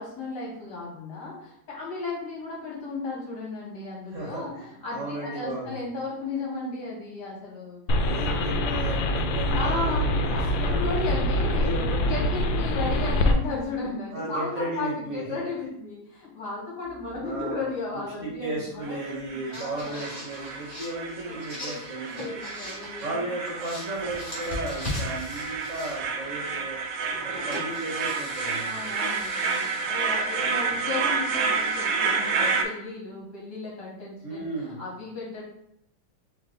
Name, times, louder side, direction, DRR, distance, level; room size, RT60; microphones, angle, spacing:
voice 1, 0.0-7.8 8.2-8.5 9.5-20.1 21.2-23.3 28.6-35.4, left 3 dB, 60° left, -5 dB, 2.2 m, -35 dB
voice 2, 4.1-4.6 4.9-5.8 8.0-10.8 11.4-12.0 14.1-15.4 17.2-22.3 23.0-26.8 27.2-28.8 30.5-30.7 34.2-34.8, right 2 dB, 50° right, -3 dB, 1.1 m, -35 dB
sound 1, 7.9-13.3, left 1 dB, 85° left, 1.3 m, -25 dB
sound 2, 16.8-17.4 19.1-19.2 19.5-23.1 23.4-26.3 27.1-31.9, left 1 dB, 20° left, 1.6 m, -40 dB
sound 3, 18.8-32.6, right 4 dB, 80° right, 0.7 m, -30 dB
4.6 x 3.0 x 3.8 m, 0.73 s
omnidirectional pair, 2.0 m